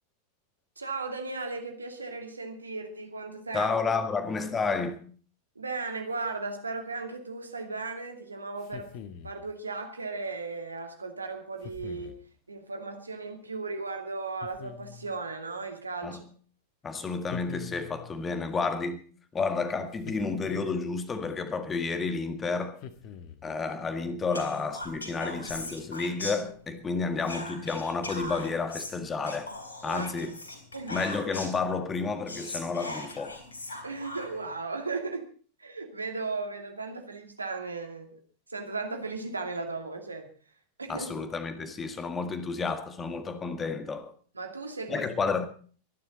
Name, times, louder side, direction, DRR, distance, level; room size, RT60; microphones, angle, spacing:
voice 1, 0.8-3.7 5.6-8.9 9.2-12.2 12.5-16.2 24.3-24.4 25.2-25.4 29.8-30.1 30.7-31.0 33.8-35.3 35.6-38.2 38.5-40.3 40.8-41.1 44.3-45.1, right 3 dB, 80° right, 2.6 m, -36 dB
voice 2, 3.5-5.1 16.0-16.3 16.8-19.0 19.3-22.8 23.4-29.5 29.8-30.3 30.9-33.4 40.9-44.1 44.9-45.5, left 4 dB, 20° left, 1.7 m, -31 dB
sound 1, 8.6-9.5 11.6-12.2 14.4-15.2 17.3-18.2 20.0-21.0 22.8-23.6, left 7 dB, 40° left, 1.6 m, -44 dB
Whispering, 24.3-26.8 27.2-31.6 32.0-32.1 32.3-34.5, left 2 dB, 75° left, 4.0 m, -40 dB
23.0 x 11.0 x 4.2 m
figure-of-eight pair, 90°, 0 cm